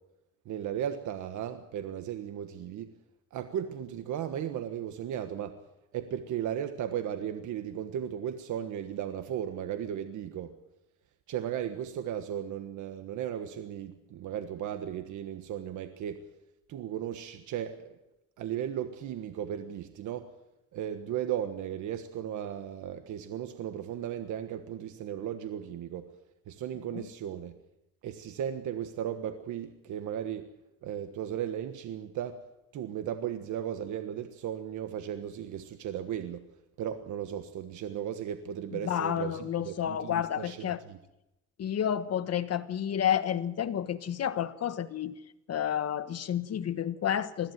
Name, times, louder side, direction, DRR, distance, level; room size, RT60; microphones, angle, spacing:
voice 1, 0.4-2.9 3.3-5.6 5.9-10.5 11.3-16.2 16.7-18.0 18.4-20.3 20.7-26.1 26.5-27.6 28.0-30.5 30.8-32.4 32.7-36.4 36.8-41.0, right 10 dB, 80° right, 1.4 m, -36 dB
voice 2, 38.7-40.8 41.6-45.2 45.5-47.5, left 9 dB, 55° left, 1.3 m, -30 dB
21.0 x 15.0 x 9.3 m
cardioid pair, 95°, 29 cm